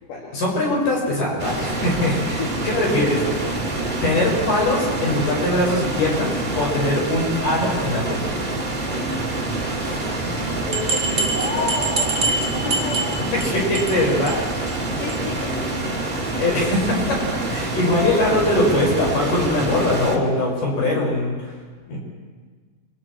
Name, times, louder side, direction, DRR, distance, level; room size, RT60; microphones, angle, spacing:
voice 1, 0.3-3.2 4.0-8.3 9.8-9.9 13.3-14.7 16.4-17.2 17.5-21.4 21.9-22.0, left 1 dB, 45° left, -2 dB, 7.4 m, -22 dB
sound 1, 1.4-20.2, right 2 dB, 40° right, 0.6 m, -26 dB
voice 2, 2.7-3.1 9.9-11.8 12.2-12.9 14.9-15.9 21.9-22.0, left 4 dB, 70° left, -4 dB, 4.8 m, -34 dB
sound 2, 6.6-13.2, left 1 dB, 5° left, 4.7 m, -34 dB
sound 3, 10.7-13.5 13.7-14.0 14.3-14.4 14.7-14.8 15.1-15.2, right 3 dB, 70° right, 1.1 m, -24 dB
30.0 x 24.0 x 4.6 m, 1.5 s
omnidirectional pair, 5.3 m